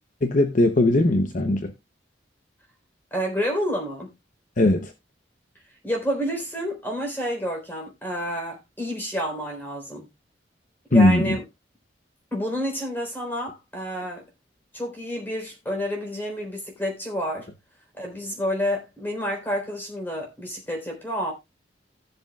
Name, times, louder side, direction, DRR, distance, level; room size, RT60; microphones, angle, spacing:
voice 1, 0.2-1.7 4.6-4.9 10.9-11.4, left 1 dB, 45° left, 0.7 m, -19 dB
voice 2, 3.1-4.1 5.8-10.1 10.9-11.4 12.3-14.2 14.7-17.5 18.0-21.3, equal, 10° left, 3.8 m, -29 dB
17.5 x 7.1 x 2.3 m
head